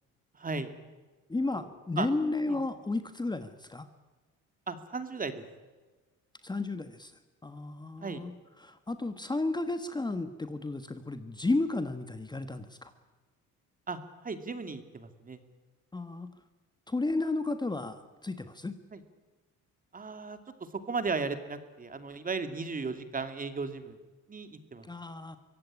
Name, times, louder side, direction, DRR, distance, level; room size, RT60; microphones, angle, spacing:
voice 1, 0.4-0.7 1.5-1.7 2.0-2.1 2.5-2.6 4.7-5.4 8.0-8.2 13.9-14.0 14.2-15.4 18.9-19.0 19.9-20.4 20.9-24.0 24.3-24.9, right 4 dB, 25° right, 9 dB, 2.5 m, -35 dB
voice 2, 1.3-3.9 6.4-7.1 7.4-8.3 8.6-12.9 15.9-16.3 16.9-18.8 24.9-25.4, left 2 dB, 15° left, 9 dB, 1.4 m, -33 dB
24.0 x 16.5 x 9.9 m, 1.3 s
cardioid pair, 115°, 30 cm